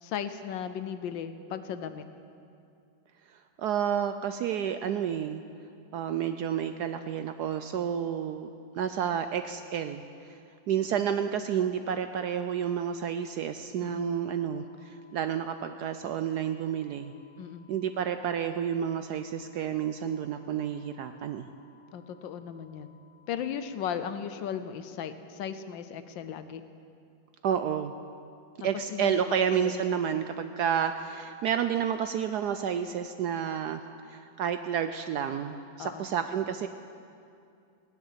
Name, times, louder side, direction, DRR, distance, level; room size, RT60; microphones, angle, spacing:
voice 1, 0.0-2.0 13.8-14.1 17.4-17.7 21.9-22.9 23.3-26.6 28.9-29.1 29.5-29.7 35.8-36.1, left 8 dB, 75° left, 11 dB, 1.4 m, -36 dB
voice 2, 3.6-5.4 5.9-8.5 8.7-10.0 10.3-10.4 10.7-17.1 17.7-21.5 27.4-27.9 28.6-33.8 34.1-36.7, right 8 dB, 75° right, 9 dB, 0.9 m, -30 dB
sound 1, 13.8-23.7, left 6 dB, 15° left, 2.8 m, -62 dB
18.0 x 10.5 x 7.4 m, 2.5 s
omnidirectional pair, 2.1 m